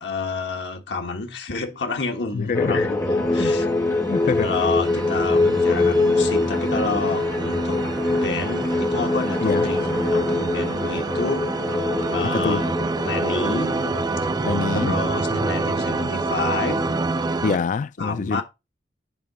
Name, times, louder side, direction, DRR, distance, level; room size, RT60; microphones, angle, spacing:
voice 1, 0.0-3.6 4.4-7.8 8.2-9.8 10.1-11.5 12.1-12.7 13.0-13.7 14.2-14.3 14.7-16.8 18.0-18.4, left 3 dB, 75° left, 1.3 m, -29 dB
voice 2, 2.3-2.9 3.4-3.5 4.1-4.5 9.4-9.7 12.3-12.7 14.4-14.9 17.4-18.4, left 5 dB, 45° left, 0.3 m, -25 dB
sound 1, 2.5-17.4, left 2 dB, 15° left, 1.4 m, -24 dB
sound 2, 3.2-17.6, right 3 dB, 25° right, 0.4 m, -28 dB
8.9 x 3.8 x 5.1 m
head